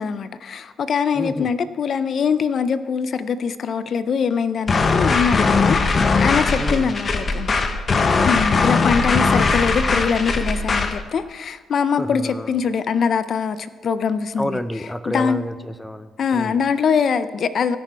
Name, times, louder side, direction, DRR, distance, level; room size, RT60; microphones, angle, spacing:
voice 1, 0.0-7.6 8.3-14.6 15.1-15.4 16.2-17.8, left 6 dB, 55° left, 13 dB, 0.4 m, -23 dB
voice 2, 1.1-1.5 5.4-5.7 6.6-7.0 11.9-12.6 14.4-16.6, equal, 5° left, 12 dB, 0.5 m, -29 dB
sound 1, 4.7-11.0, left 4 dB, 40° left, 0.8 m, -19 dB
18.0 x 6.0 x 4.5 m, 1.5 s
cardioid pair, 90°, 0 cm